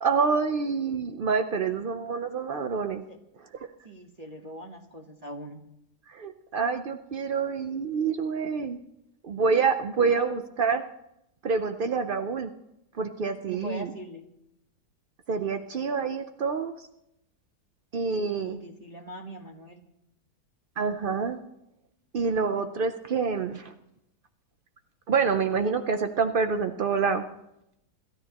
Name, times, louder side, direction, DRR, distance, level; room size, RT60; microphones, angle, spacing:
voice 1, 0.0-3.0 3.5-3.7 6.1-8.8 9.2-10.8 11.4-12.5 13.0-13.9 15.3-16.9 17.9-18.6 20.8-21.4 22.1-23.7 25.1-27.2, right 5 dB, 70° right, 7 dB, 0.5 m, -27 dB
voice 2, 3.8-5.6 10.1-10.4 13.5-14.2 18.1-19.8, equal, 25° right, 1 dB, 1.1 m, -42 dB
27.0 x 13.0 x 2.9 m, 0.82 s
omnidirectional pair, 1.8 m